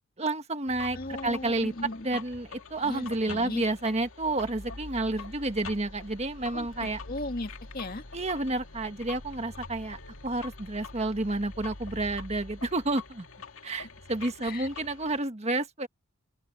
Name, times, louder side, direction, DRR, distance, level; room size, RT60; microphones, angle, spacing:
voice 1, 0.2-1.7 2.0-7.0 8.1-13.3 13.6-15.9, right 2 dB, 35° right, 1.5 m, -30 dB
sound 1, 0.7-15.2, left 3 dB, 85° left, 2.4 m, -44 dB
voice 2, 0.9-2.1 2.8-3.6 6.5-8.1 14.4-14.7, left 2 dB, 50° left, 2.1 m, -37 dB
open air
head